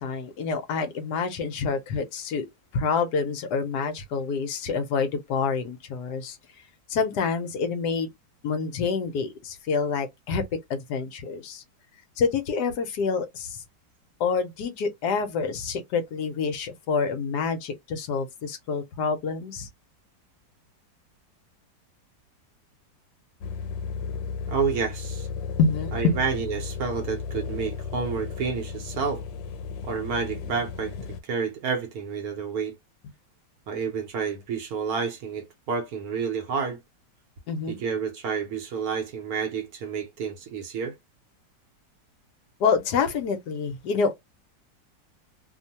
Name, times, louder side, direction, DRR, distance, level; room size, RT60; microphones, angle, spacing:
voice 1, 0.0-2.5 2.7-6.4 6.9-8.1 8.4-11.6 12.2-13.6 14.2-19.7 25.6-26.2 37.5-37.8 42.6-44.1, left 5 dB, 70° left, 1.1 m, -27 dB
sound 1, 23.4-31.2, left 5 dB, 90° left, 1.3 m, -34 dB
voice 2, 24.5-25.3 25.9-29.2 29.8-30.9 31.2-32.7 33.7-36.8 37.7-41.0, right 6 dB, 65° right, 1.0 m, -29 dB
3.0 x 2.1 x 2.7 m
omnidirectional pair, 1.9 m